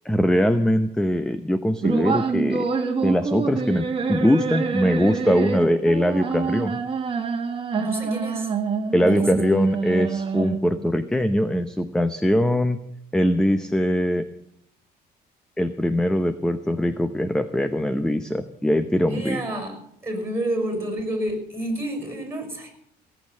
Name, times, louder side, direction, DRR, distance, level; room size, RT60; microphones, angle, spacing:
voice 1, 0.0-2.7 3.0-6.8 8.9-12.8 13.1-14.2 15.6-19.4, equal, 5° left, 10 dB, 0.8 m, -22 dB
sound 1, 1.8-10.8, right 5 dB, 30° right, 1.8 m, -26 dB
voice 2, 7.8-8.5 9.1-9.4 19.1-22.7, right 1 dB, 15° right, 4 dB, 6.0 m, -29 dB
17.5 x 8.5 x 7.6 m, 0.75 s
cardioid pair, 110°, 17 cm